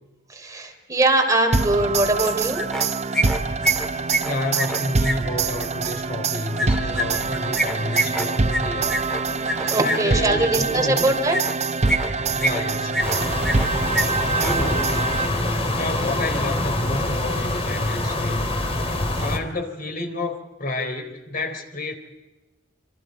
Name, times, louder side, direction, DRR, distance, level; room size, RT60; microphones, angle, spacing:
voice 1, 0.3-2.7 9.6-11.4, right 2 dB, 20° right, 2 dB, 3.5 m, -21 dB
sound 1, 1.5-15.6, right 4 dB, 35° right, 0.7 m, -25 dB
sound 2, 2.2-2.9 3.1-5.2 6.6-10.0 11.3-11.5 11.9-12.6 12.9-13.7 13.9-14.0 14.3-14.6, right 1 dB, 5° left, 3.0 m, -25 dB
voice 2, 4.2-9.0 9.4-11.1 12.3-13.5 14.0-14.9 15.7-18.5 18.9-22.0, left 2 dB, 50° left, 5 dB, 3.7 m, -30 dB
sound 3, 13.0-19.4, left 1 dB, 30° left, 3.2 m, -25 dB
28.0 x 26.5 x 4.7 m, 1.1 s
head